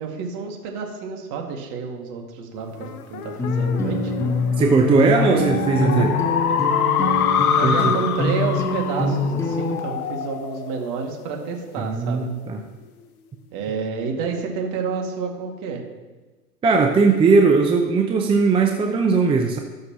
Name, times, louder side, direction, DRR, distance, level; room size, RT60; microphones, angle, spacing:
voice 1, 0.0-4.1 5.1-5.5 5.8-6.1 6.6-6.7 7.5-12.2 13.5-15.8, right 5 dB, 45° right, 1 dB, 2.3 m, -29 dB
sound 1, 2.8-11.6, left 8 dB, 65° left, 1.1 m, -26 dB
sound 2, 3.4-9.8, left 2 dB, 5° left, 1.0 m, -24 dB
voice 2, 4.6-6.2 7.6-8.0 11.8-12.6 16.6-19.6, right 4 dB, 10° right, 3 dB, 0.6 m, -18 dB
18.5 x 6.6 x 3.1 m, 1.2 s
hypercardioid pair, 105°, 46 cm